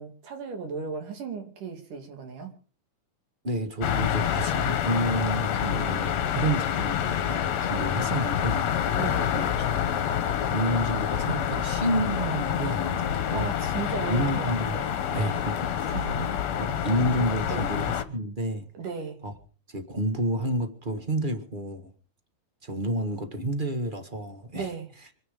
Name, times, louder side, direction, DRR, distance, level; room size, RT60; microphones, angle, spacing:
voice 1, 0.0-2.5 5.7-5.8 9.0-9.3 13.3-14.9 15.8-16.3 17.5-17.7 18.7-19.2 24.5-24.9, right 5 dB, 90° right, 4.3 m, -36 dB
voice 2, 3.4-8.7 9.3-9.5 9.9-10.0 10.4-13.5 14.1-14.8 15.1-16.0 16.6-18.7 19.2-19.3 19.7-21.9 22.6-24.7, right 1 dB, 30° right, 1.0 m, -30 dB
sound 1, 3.8-18.0, left 9 dB, 65° left, 2.3 m, -27 dB
26.0 x 9.8 x 5.2 m
omnidirectional pair, 3.6 m